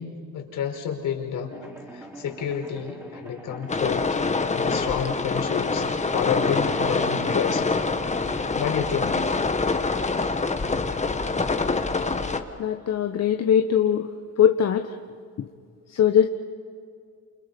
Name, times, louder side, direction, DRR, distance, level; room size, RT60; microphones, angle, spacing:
voice 1, 0.0-1.5 1.9-4.0 4.5-5.9 6.1-7.6 8.5-9.3, left 8 dB, 65° left, 2 dB, 4.8 m, -29 dB
sound 1, 1.5-11.9, right 1 dB, 10° right, 5.0 m, -43 dB
sound 2, 3.7-12.4, left 3 dB, 20° left, 1.8 m, -25 dB
voice 2, 12.6-14.1 14.4-14.8 15.9-16.2, left 9 dB, 50° left, 5 dB, 1.3 m, -20 dB
29.5 x 29.0 x 5.4 m, 2.2 s
cardioid pair, 90°, 33 cm